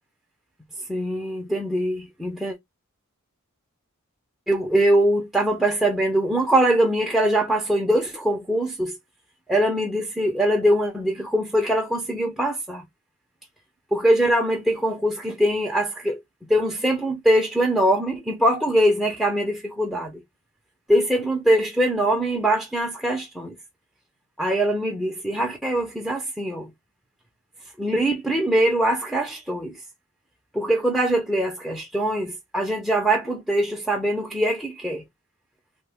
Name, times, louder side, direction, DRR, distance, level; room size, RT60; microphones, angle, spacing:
voice 1, 0.9-2.6 4.5-9.0 9.5-12.8 13.9-16.2 16.5-20.1 20.9-23.5 24.4-26.7 27.8-29.8 30.5-35.0, right 1 dB, ahead, 0.5 m, -22 dB
3.1 x 2.2 x 3.4 m
head